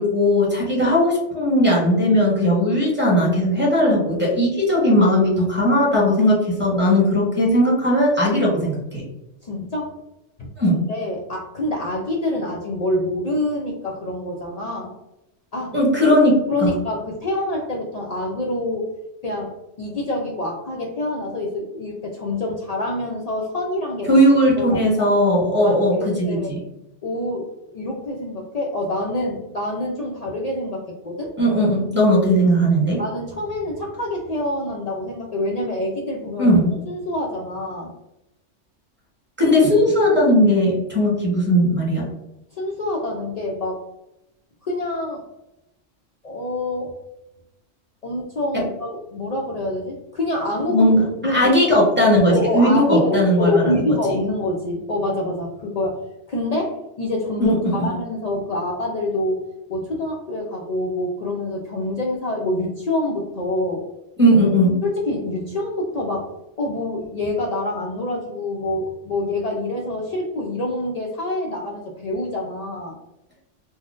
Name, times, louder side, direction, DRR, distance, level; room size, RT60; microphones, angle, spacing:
voice 1, 0.0-9.0 10.6-10.8 15.7-16.3 16.6-16.7 24.1-26.6 31.4-33.0 36.4-36.7 39.4-42.0 50.7-53.8 57.4-57.9 64.2-64.8, equal, 10° right, -5 dB, 0.9 m, -17 dB
voice 2, 9.4-10.0 10.4-14.9 15.5-15.7 16.5-18.9 19.2-24.2 24.6-24.9 25.6-26.6 27.0-31.3 33.0-36.5 36.9-37.9 42.5-43.8 44.6-45.2 46.2-46.9 48.0-50.9 51.2-51.5 52.3-56.0 56.3-59.4 59.7-63.8 64.8-66.3 66.6-73.0, left 1 dB, 70° left, -2 dB, 0.3 m, -26 dB
3.9 x 2.0 x 2.4 m, 0.89 s
omnidirectional pair, 1.2 m